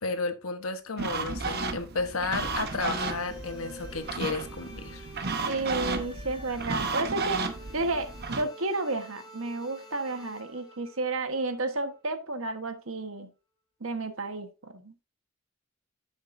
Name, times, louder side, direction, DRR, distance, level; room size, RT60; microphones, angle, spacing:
voice 1, 0.0-5.1, left 3 dB, 80° left, 1.2 m, -33 dB
sound 1, 1.0-8.4, right 3 dB, 50° right, 1.0 m, -33 dB
sound 2, 2.4-12.3, left 1 dB, 20° left, 2.2 m, -49 dB
voice 2, 5.5-7.4 7.7-13.3 13.8-15.0, right 2 dB, 70° right, 1.3 m, -31 dB
11.5 x 6.5 x 2.7 m
head